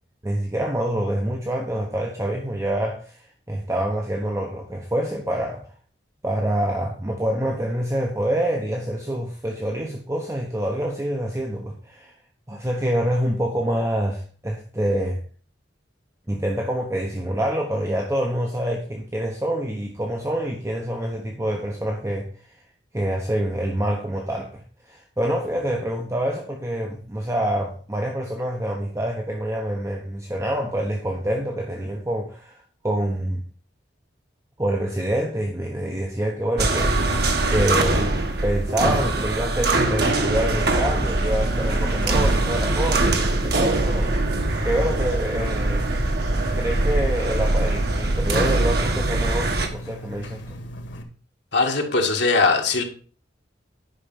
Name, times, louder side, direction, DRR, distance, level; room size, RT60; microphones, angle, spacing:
voice 1, 0.2-5.7 6.2-12.1 12.5-15.2 16.3-22.6 22.9-33.4 34.6-44.3 44.6-45.8 46.6-50.6, right 1 dB, 15° right, 1 dB, 1.1 m, -26 dB
sound 1, 36.6-49.7, right 2 dB, 55° right, 1.5 m, -22 dB
sound 2, 41.3-51.0, equal, 80° left, 1.8 m, -37 dB
voice 2, 51.5-52.8, left 3 dB, 65° left, 3 dB, 2.0 m, -20 dB
10.0 x 5.9 x 5.7 m, 0.41 s
head